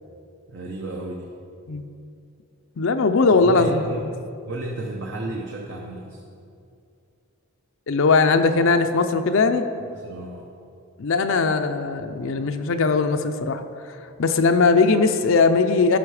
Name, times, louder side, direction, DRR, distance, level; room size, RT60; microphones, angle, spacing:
voice 1, 0.5-1.3 3.3-4.0 4.5-6.2 9.9-10.5, right 1 dB, 55° right, -1 dB, 0.9 m, -33 dB
voice 2, 2.8-3.8 7.9-9.6 11.0-13.6 14.2-16.0, left 4 dB, 65° left, 7 dB, 0.5 m, -19 dB
13.5 x 5.8 x 4.8 m, 2.5 s
head